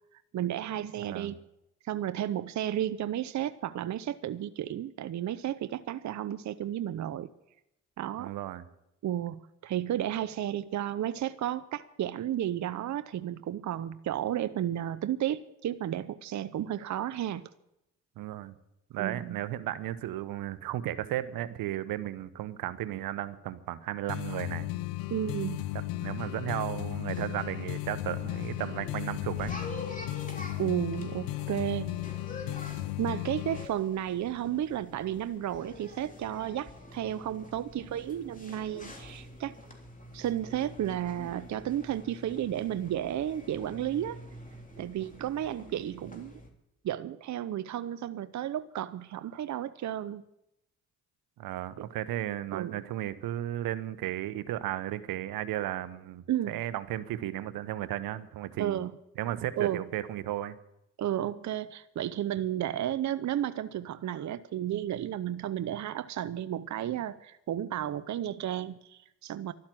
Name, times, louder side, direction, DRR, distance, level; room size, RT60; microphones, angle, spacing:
voice 1, 0.3-1.4 1.8-7.3 8.0-8.3 9.0-17.5 19.0-19.4 25.1-25.7 30.6-31.9 33.0-39.6 40.1-44.2 44.8-46.3 46.8-50.2 51.8-51.9 52.5-52.8 56.3-56.6 58.6-58.9 59.6-59.8 61.0-69.5, right 11 dB, 55° right, 13 dB, 0.7 m, -33 dB
voice 2, 1.0-1.4 8.2-8.6 18.2-18.6 18.9-24.7 26.0-29.5 51.4-58.8 59.2-60.5, right 13 dB, 80° right, 14 dB, 1.0 m, -34 dB
sound 1, 24.1-33.7, left 17 dB, 90° left, 0.6 m, -35 dB
sound 2, 26.9-46.5, left 1 dB, 25° left, 3.4 m, -47 dB
12.5 x 11.5 x 7.6 m, 0.84 s
supercardioid pair, 55°, 34 cm